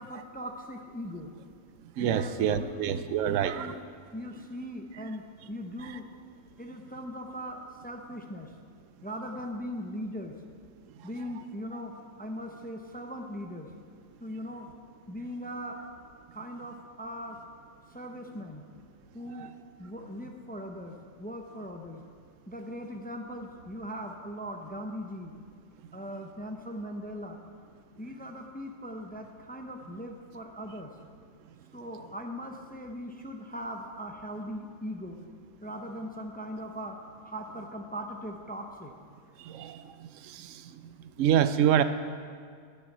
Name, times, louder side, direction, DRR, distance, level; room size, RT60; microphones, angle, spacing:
voice 1, 0.0-1.3 2.0-3.7 4.1-6.0 6.6-8.5 9.0-10.3 11.0-11.9 12.2-13.7 14.2-14.7 15.1-15.8 16.3-17.4 17.9-18.6 19.1-22.0 22.5-25.3 25.9-27.4 28.0-30.9 31.7-35.2 35.6-37.0 37.2-38.9, equal, 15° left, 3 dB, 0.3 m, -39 dB
voice 2, 2.0-3.7 19.4-19.5 39.4-39.8 40.3-40.5 41.2-41.8, right 9 dB, 80° right, 11 dB, 0.9 m, -26 dB
9.9 x 6.8 x 7.3 m, 2.1 s
omnidirectional pair, 1.3 m